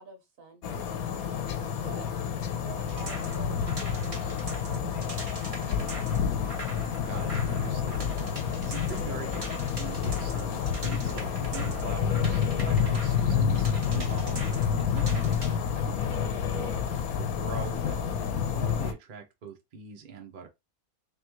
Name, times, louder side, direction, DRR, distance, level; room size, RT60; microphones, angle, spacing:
voice 1, 0.0-1.4 1.8-2.1 2.6-5.7 16.1-16.4, right 3 dB, 70° right, 1.7 m, -49 dB
sound 1, 0.6-18.9, left 7 dB, 90° left, 1.1 m, -29 dB
sound 2, 2.9-15.6, right 2 dB, 25° right, 1.1 m, -42 dB
voice 2, 6.8-20.5, right 5 dB, 45° right, 0.8 m, -43 dB
3.5 x 3.5 x 3.0 m
omnidirectional pair, 1.5 m